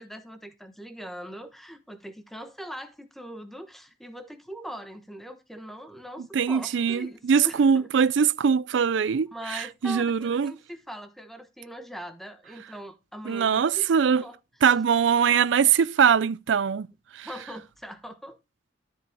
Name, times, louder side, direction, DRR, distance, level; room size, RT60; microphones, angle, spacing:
voice 1, 0.0-7.9 9.3-14.4 17.2-18.4, equal, ahead, 1.2 m, -41 dB
voice 2, 6.3-10.5 13.3-14.2 14.6-16.9 17.1-17.3, right 7 dB, 80° right, 0.4 m, -22 dB
13.0 x 4.9 x 3.6 m
head